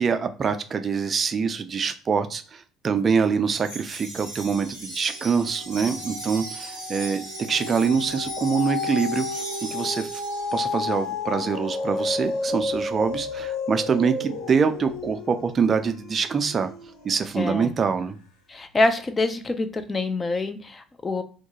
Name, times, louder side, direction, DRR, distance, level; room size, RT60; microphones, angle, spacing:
voice 1, 0.0-9.4 9.7-10.2 10.5-16.7 17.0-18.2, right 6 dB, 40° right, 8 dB, 0.4 m, -25 dB
Wind chime, 3.5-11.0, right 1 dB, 90° left, 1.2 m, -38 dB
sound 1, 4.0-4.5 4.9-17.4 17.9-18.0, left 3 dB, 75° left, 0.9 m, -32 dB
voice 2, 17.4-17.7 18.5-21.2, left 2 dB, 25° left, 9 dB, 0.4 m, -25 dB
2.2 x 2.2 x 2.9 m, 0.41 s
hypercardioid pair, 55°, 0 cm